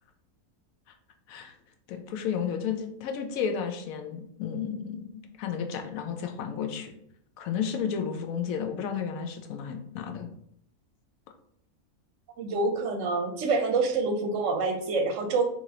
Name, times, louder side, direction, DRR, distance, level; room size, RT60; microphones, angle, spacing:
voice 1, 1.9-6.9 7.4-10.3, left 7 dB, 75° left, 5 dB, 1.0 m, -32 dB
voice 2, 12.4-15.4, right 3 dB, 65° right, 5 dB, 0.9 m, -27 dB
3.8 x 3.0 x 2.7 m, 0.70 s
omnidirectional pair, 1.5 m